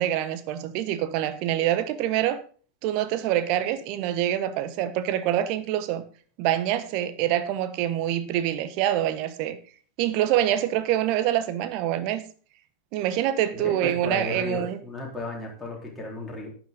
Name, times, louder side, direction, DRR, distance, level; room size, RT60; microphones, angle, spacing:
voice 1, 0.0-2.4 2.8-6.0 6.4-9.6 10.0-12.2 12.9-14.8, right 12 dB, 45° right, 1.2 m, -25 dB
voice 2, 13.5-16.5, left 2 dB, 5° left, 4.2 m, -34 dB
11.5 x 9.2 x 3.8 m
figure-of-eight pair, 90°, 0 cm